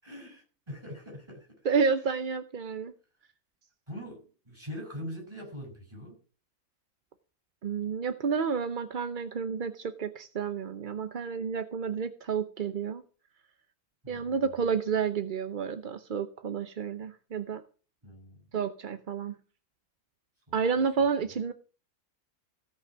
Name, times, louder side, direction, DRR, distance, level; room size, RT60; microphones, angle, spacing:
voice 1, 0.0-1.5 3.9-6.2 14.0-14.6 18.0-18.4 20.5-20.6 21.0-21.1, equal, 20° right, 1 dB, 6.7 m, -43 dB
voice 2, 1.6-2.9 7.6-13.0 14.1-17.6 18.5-19.3 20.5-21.5, right 6 dB, 45° right, 11 dB, 0.6 m, -30 dB
16.0 x 6.0 x 6.2 m, 0.38 s
omnidirectional pair, 1.6 m